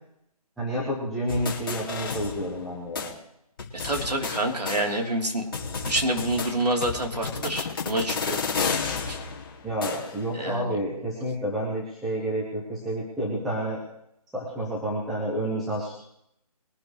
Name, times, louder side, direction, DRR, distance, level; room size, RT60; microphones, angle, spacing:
voice 1, 0.6-3.1 9.6-13.8 14.3-15.9, right 1 dB, ahead, -7 dB, 0.4 m, -29 dB
sound 1, 1.3-2.7 3.0-3.1 3.6-5.2 5.5-10.3, left 5 dB, 35° left, 2.3 m, -32 dB
voice 2, 3.8-5.4 5.8-8.5 9.1-9.2 10.3-10.8, right 1 dB, 85° right, 2 dB, 3.4 m, -27 dB
22.0 x 11.5 x 3.2 m, 0.76 s
figure-of-eight pair, 155°, 20 cm